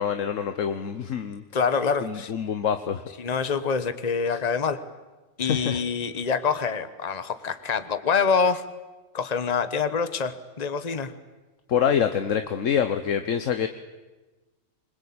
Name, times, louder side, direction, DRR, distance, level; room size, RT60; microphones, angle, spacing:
voice 1, 0.0-1.4 2.0-3.0 4.3-4.4 5.4-5.8 11.7-13.7, left 8 dB, 70° left, 8 dB, 1.4 m, -26 dB
voice 2, 1.5-2.3 3.2-4.8 5.4-8.6 9.1-11.1, left 5 dB, 30° left, 12 dB, 1.2 m, -26 dB
24.5 x 21.5 x 8.7 m, 1.2 s
omnidirectional pair, 1.4 m